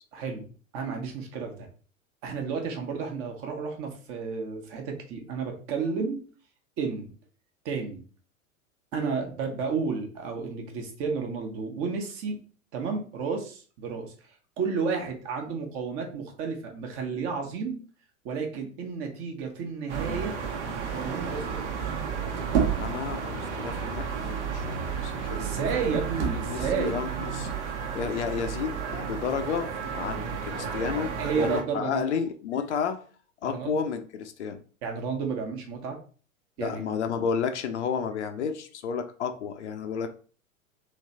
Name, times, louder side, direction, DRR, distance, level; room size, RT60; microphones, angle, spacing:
voice 1, 0.1-0.5 0.7-1.7 2.2-6.2 6.8-7.1 7.6-8.0 8.9-12.4 12.7-14.1 14.6-17.8 18.2-20.4 20.9-21.9 25.4-27.0 31.2-32.0 33.4-33.8 34.8-36.0 36.6-36.9, right 5 dB, 35° right, 3 dB, 1.1 m, -32 dB
sound 1, 19.9-31.6, right 6 dB, 55° right, 1.1 m, -31 dB
voice 2, 22.8-25.6 26.5-27.5 27.9-29.7 29.9-33.0 33.4-34.6 36.6-40.1, left 6 dB, 55° left, 7 dB, 0.7 m, -31 dB
3.3 x 3.1 x 4.1 m, 0.40 s
figure-of-eight pair, 95°, 41 cm